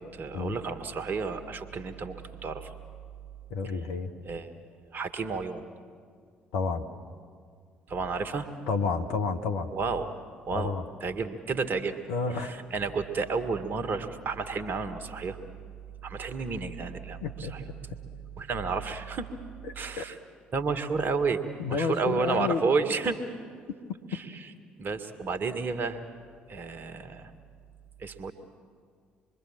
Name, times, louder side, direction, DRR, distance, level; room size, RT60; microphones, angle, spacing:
voice 1, 0.0-2.1 2.4-2.7 4.2-4.5 4.9-5.6 7.9-8.5 9.7-10.1 10.5-10.7 11.0-12.0 12.4-15.4 16.0-17.2 17.5-17.6 18.4-19.3 19.7-20.2 20.5-21.4 21.7-23.2 24.1-24.2 24.8-26.0 26.5-27.3 28.0-28.3, right 4 dB, 45° right, 9 dB, 1.7 m, -31 dB
voice 2, 3.5-4.1 6.5-6.8 8.7-9.7 10.5-10.8 12.1-12.6 17.2-17.5 20.0-20.1 21.6-22.6, left 4 dB, 65° left, 6 dB, 1.3 m, -30 dB
26.0 x 22.5 x 7.4 m, 2.1 s
figure-of-eight pair, 50°, 5 cm